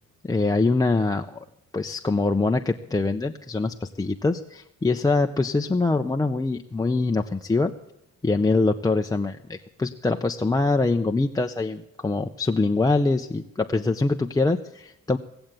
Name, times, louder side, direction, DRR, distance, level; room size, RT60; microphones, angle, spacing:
voice 1, 0.2-1.4 1.7-7.7 8.2-15.2, left 3 dB, 15° left, 3 dB, 0.5 m, -24 dB
17.5 x 7.9 x 8.8 m, 0.87 s
cardioid pair, 115°, 29 cm